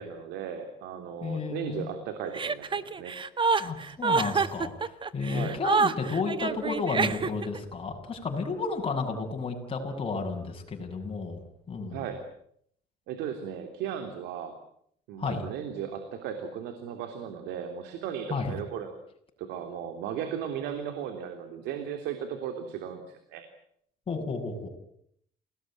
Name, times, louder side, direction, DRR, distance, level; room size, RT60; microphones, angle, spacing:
voice 1, 0.0-3.1 5.2-5.6 11.9-12.2 13.1-14.5 15.1-18.9 19.4-23.4, right 8 dB, 90° right, 7 dB, 3.3 m, -36 dB
voice 2, 1.2-1.9 3.6-11.4 11.7-12.0 15.2-15.4 18.3-18.5 24.1-24.7, left 4 dB, 35° left, 2 dB, 7.8 m, -32 dB
Chuckle chortle, 2.3-7.6, right 5 dB, 30° right, 1.6 m, -27 dB
29.0 x 19.5 x 9.3 m, 0.70 s
cardioid pair, 110°, 17 cm